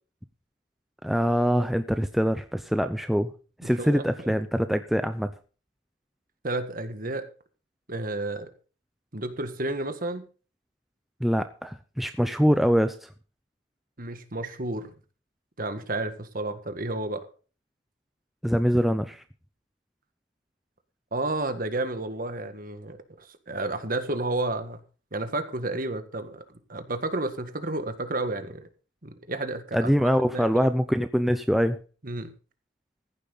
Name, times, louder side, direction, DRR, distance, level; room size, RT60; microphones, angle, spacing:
voice 1, 1.0-3.3 3.6-5.3 11.2-13.1 18.4-19.2 29.7-31.8, equal, ahead, 9 dB, 0.6 m, -24 dB
voice 2, 3.6-4.4 6.4-7.2 7.9-8.5 9.1-10.2 14.0-14.9 15.6-17.2 21.1-24.8 25.1-26.4 26.7-28.6 29.0-30.7 32.0-32.3, right 2 dB, 45° right, 9 dB, 1.7 m, -31 dB
15.0 x 10.5 x 4.0 m, 0.36 s
head